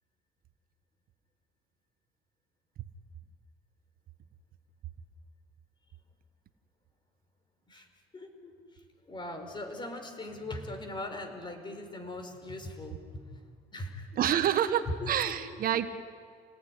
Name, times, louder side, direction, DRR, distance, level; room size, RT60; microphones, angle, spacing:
voice 1, 8.1-13.4 13.7-14.1 14.6-14.8 15.2-15.3, left 1 dB, 25° left, 6 dB, 4.6 m, -41 dB
voice 2, 14.2-15.9, right 10 dB, 60° right, 10 dB, 1.3 m, -27 dB
28.5 x 19.0 x 10.0 m, 2.2 s
cardioid pair, 110°, 17 cm